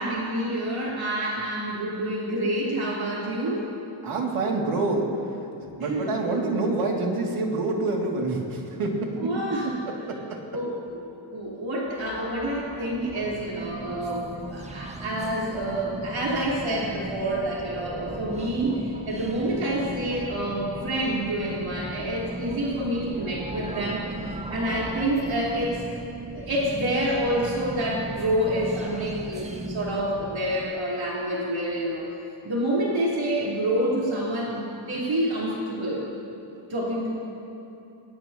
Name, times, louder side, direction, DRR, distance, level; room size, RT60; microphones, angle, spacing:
voice 1, 0.0-3.7 5.8-6.1 9.2-9.8 10.5-10.8 11.3-24.0 24.3-25.8 26.3-32.0 32.4-36.0 36.7-37.1, right 1 dB, 65° right, -6 dB, 4.3 m, -28 dB
voice 2, 4.0-5.1 5.8-9.3 10.1-10.4, right 3 dB, 85° right, -1 dB, 2.8 m, -27 dB
sound 1, 11.9-30.7, right 2 dB, 15° right, 0.9 m, -38 dB
23.0 x 20.5 x 3.0 m, 2.8 s
cardioid pair, 95°, 49 cm